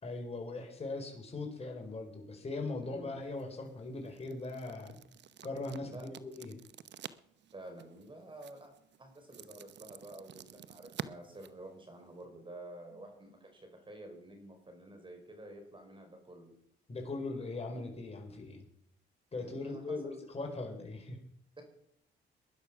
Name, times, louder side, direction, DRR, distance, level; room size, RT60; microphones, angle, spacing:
voice 1, 0.0-5.0 5.4-6.6 16.9-18.6 19.3-21.2, left 3 dB, 30° left, 1 dB, 4.4 m, -40 dB
voice 2, 2.8-3.2 5.8-6.1 7.5-8.7 9.0-16.5 19.4-20.2 21.6-21.7, right 1 dB, 25° right, 4 dB, 5.0 m, -50 dB
sound 1, 3.2-12.3, right 10 dB, 60° right, 0.9 m, -50 dB
19.5 x 11.5 x 6.0 m, 0.71 s
cardioid pair, 90°, 20 cm